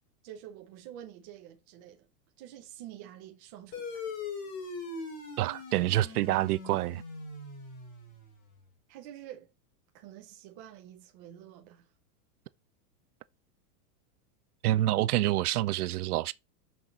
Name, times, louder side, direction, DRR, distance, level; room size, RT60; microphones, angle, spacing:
voice 1, 0.2-2.1 2.4-4.1 8.9-9.5 9.9-11.9, right 11 dB, 15° right, 0.4 m, -48 dB
sound 1, 3.7-8.6, left 3 dB, 40° left, 4.6 m, -41 dB
voice 2, 5.4-7.0 14.6-16.3, right 15 dB, 65° right, 0.7 m, -27 dB
6.2 x 6.1 x 4.2 m
supercardioid pair, 160°, 49 cm